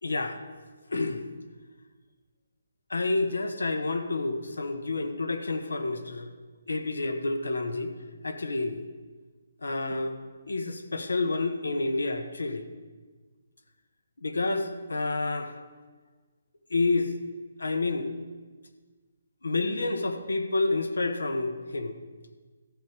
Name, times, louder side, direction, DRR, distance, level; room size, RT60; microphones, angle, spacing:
voice 1, 0.0-0.4 0.9-1.2 2.9-6.3 6.7-7.9 8.2-8.8 9.6-10.2 10.5-12.6 14.2-15.5 16.7-17.1 17.6-18.1 19.4-21.9, left 3 dB, 85° left, 7 dB, 1.2 m, -29 dB
14.0 x 7.3 x 4.8 m, 1.4 s
hypercardioid pair, 150°, 0 cm